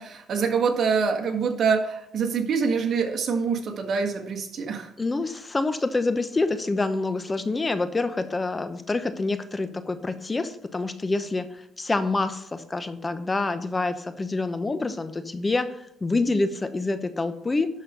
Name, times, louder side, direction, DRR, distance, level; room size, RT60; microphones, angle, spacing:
voice 1, 0.0-4.9, right 5 dB, 60° right, 3 dB, 1.6 m, -25 dB
voice 2, 5.0-17.7, left 3 dB, 25° left, 10 dB, 0.9 m, -27 dB
11.5 x 4.4 x 6.7 m, 0.72 s
cardioid pair, 90°, 0 cm